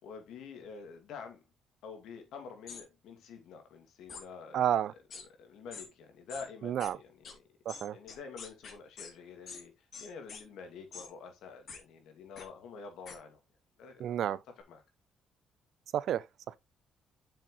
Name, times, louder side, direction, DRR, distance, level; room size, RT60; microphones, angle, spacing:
voice 1, 0.0-1.4 1.8-4.6 5.4-7.3 7.9-13.4 13.8-14.2 14.7-14.8, left 5 dB, 85° left, 2.4 m, -47 dB
sound 1, 2.7-2.8 4.1-4.2 5.1-5.2 5.7-5.9 6.3-6.4 6.8-6.9 7.2-7.3 7.7-9.1 9.5-9.6 9.9-10.4 10.9-11.1 11.7-11.8 12.4-12.5 13.0-13.2, left 5 dB, 55° left, 2.7 m, -45 dB
voice 2, 4.5-4.9 6.6-7.0 7.7-8.0 14.0-14.4 15.9-16.6, right 10 dB, 70° right, 0.5 m, -31 dB
8.4 x 6.4 x 3.1 m
cardioid pair, 90°, 0 cm